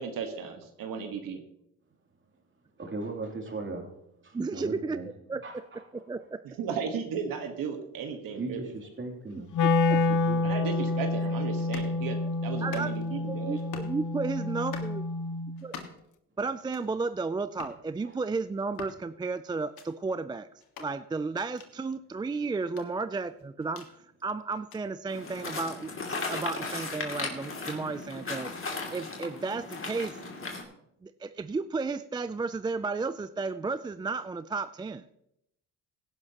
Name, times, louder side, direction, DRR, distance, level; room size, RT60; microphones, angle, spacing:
voice 1, 0.0-1.4 6.4-8.7 10.4-13.6, right 6 dB, 70° right, 5 dB, 1.5 m, -35 dB
voice 2, 2.8-3.9 4.2-5.1 5.4-5.8 8.4-9.5 9.9-10.6, right 3 dB, 35° right, 1 dB, 3.0 m, -38 dB
voice 3, 4.3-5.0 5.3-5.6 5.9-6.4 9.6-10.0 12.6-15.0 15.6-15.8 16.4-20.5 20.8-28.5 28.9-30.2 31.0-35.1, right 4 dB, 15° right, 12 dB, 0.3 m, -33 dB
Wind instrument woodwind instrument, 9.5-15.6, left 3 dB, 60° left, 1.1 m, -28 dB
sound 1, 11.6-11.9 12.6-13.1 13.6-14.0 14.5-15.0 15.6-16.1 16.6-16.9 17.5-17.8 18.6-19.0 19.6-19.9 20.6-20.9 21.5-21.7 22.6-23.9 24.5-24.8 25.5-25.7, left 7 dB, 80° left, 1.8 m, -45 dB
sound 2, 25.1-30.6, left 3 dB, 35° left, 2.6 m, -36 dB
17.0 x 11.0 x 2.9 m, 0.79 s
cardioid pair, 85°, 35 cm